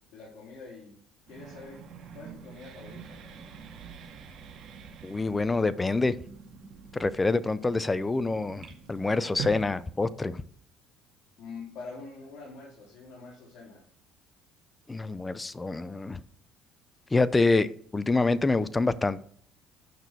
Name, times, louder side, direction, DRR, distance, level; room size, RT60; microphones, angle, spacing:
voice 1, 0.1-1.0 1.3-1.8 2.1-3.2 11.4-13.8, left 4 dB, 60° left, -4 dB, 3.7 m, -45 dB
sound 1, 1.3-9.9, right 6 dB, 60° right, 2.1 m, -45 dB
voice 2, 5.0-6.2 6.9-10.4 14.9-16.2 17.1-17.7 17.9-19.2, left 3 dB, 15° left, 16 dB, 0.5 m, -26 dB
9.3 x 6.0 x 4.6 m, 0.62 s
cardioid pair, 105°, 0 cm